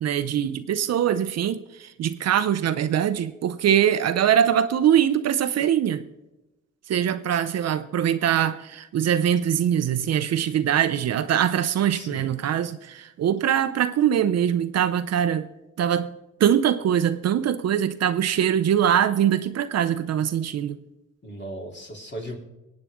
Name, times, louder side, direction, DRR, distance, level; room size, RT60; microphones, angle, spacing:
voice 1, 0.0-6.0 6.9-15.5 15.8-20.8, right 9 dB, 55° right, 0.7 m, -22 dB
voice 2, 11.9-12.3 21.2-22.3, right 1 dB, 35° left, 3.2 m, -37 dB
23.5 x 8.9 x 3.6 m
cardioid pair, 90°, 30 cm